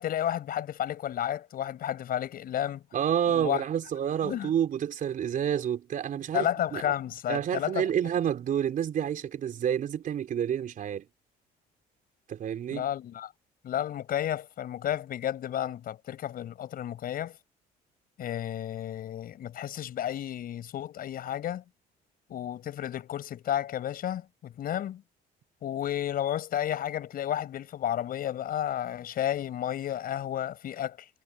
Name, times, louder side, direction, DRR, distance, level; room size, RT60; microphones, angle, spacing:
voice 1, 0.0-2.8 3.3-3.7 4.2-4.5 6.3-7.9 12.7-13.3 13.6-17.4 18.2-21.6 22.3-25.0 25.6-31.1, left 11 dB, 60° left, 6.0 m, -32 dB
voice 2, 2.9-6.8 7.3-11.1 12.3-12.9, right 9 dB, 50° right, 4.0 m, -29 dB
cardioid pair, 110°, 17 cm